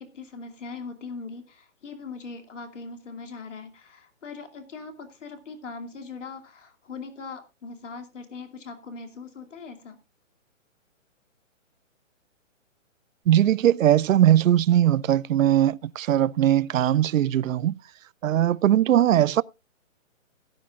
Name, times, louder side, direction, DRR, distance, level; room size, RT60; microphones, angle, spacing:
voice 1, 0.0-10.0, left 4 dB, 65° left, 2.6 m, -40 dB
voice 2, 13.3-17.8 18.2-19.4, right 11 dB, 80° right, 0.5 m, -20 dB
16.5 x 10.5 x 2.4 m
hypercardioid pair, 180°, 40 cm